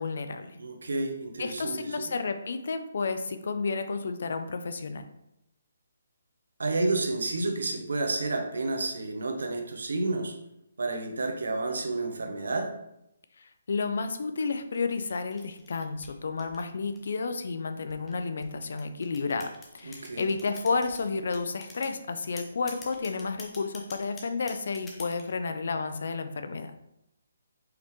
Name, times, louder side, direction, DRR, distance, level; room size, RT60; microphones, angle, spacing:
voice 1, 0.0-0.6 1.4-5.1 13.4-26.7, left 4 dB, 65° left, 9 dB, 0.5 m, -31 dB
voice 2, 0.6-2.0 6.6-10.4 10.8-12.7 19.8-20.2, right 2 dB, 75° right, 4 dB, 0.8 m, -30 dB
sound 1, 14.7-17.2 17.9-21.0 21.3-22.0 22.4-25.3, left 3 dB, 15° left, 0.8 m, -46 dB
4.7 x 3.4 x 3.1 m, 0.82 s
hypercardioid pair, 150°, 0 cm